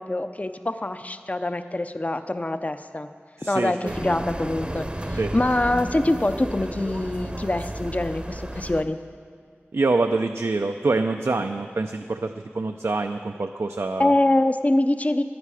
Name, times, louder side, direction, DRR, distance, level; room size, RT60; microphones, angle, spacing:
voice 1, 0.0-3.1 3.5-9.0 14.0-15.2, left 1 dB, 30° left, 9 dB, 0.5 m, -24 dB
voice 2, 3.4-3.9 5.2-5.3 9.7-14.1, right 3 dB, 80° right, 6 dB, 0.4 m, -25 dB
sound 1, 3.9-8.8, right 1 dB, 25° right, 0.7 m, -33 dB
14.0 x 10.5 x 4.8 m, 2.1 s
wide cardioid pair, 50°, 5 cm